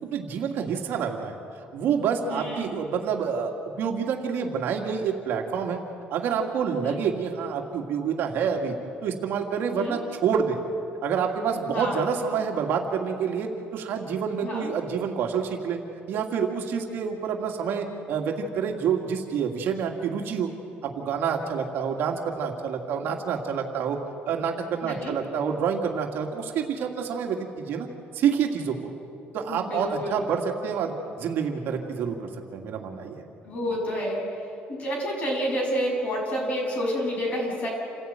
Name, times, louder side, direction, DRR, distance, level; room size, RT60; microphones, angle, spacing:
voice 1, 0.1-1.4 1.7-3.5 3.8-5.8 6.1-8.7 9.0-10.6 11.0-15.8 16.1-20.5 20.8-24.0 24.2-27.9 28.1-28.8 29.3-30.9 31.2-33.3, right 7 dB, 65° right, 2 dB, 2.3 m, -27 dB
voice 2, 2.3-2.7 6.8-7.0 9.8-10.0 11.7-12.1 14.4-14.7 24.8-25.1 29.5-30.2 33.4-34.2 34.7-37.7, equal, 40° left, -1 dB, 7.9 m, -29 dB
28.5 x 15.0 x 9.0 m, 2.7 s
cardioid pair, 150°, 4 cm